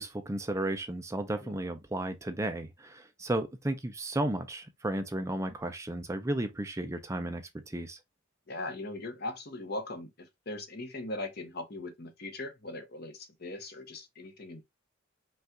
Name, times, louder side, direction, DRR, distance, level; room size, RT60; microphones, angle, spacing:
voice 1, 0.0-8.0, right 1 dB, 15° right, 0.5 m, -34 dB
voice 2, 8.5-14.6, left 2 dB, 50° left, 1.0 m, -40 dB
5.4 x 2.5 x 3.6 m
head